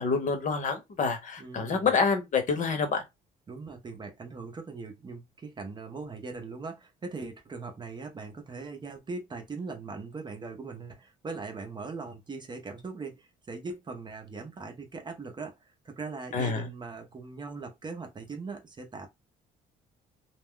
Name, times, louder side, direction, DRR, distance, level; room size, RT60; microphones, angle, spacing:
voice 1, 0.0-3.0 16.3-16.6, left 5 dB, 50° left, 1.0 m, -27 dB
voice 2, 1.4-1.9 3.5-15.5 15.8-19.1, right 4 dB, 25° right, 0.7 m, -40 dB
2.3 x 2.2 x 3.6 m
cardioid pair, 110°, 17 cm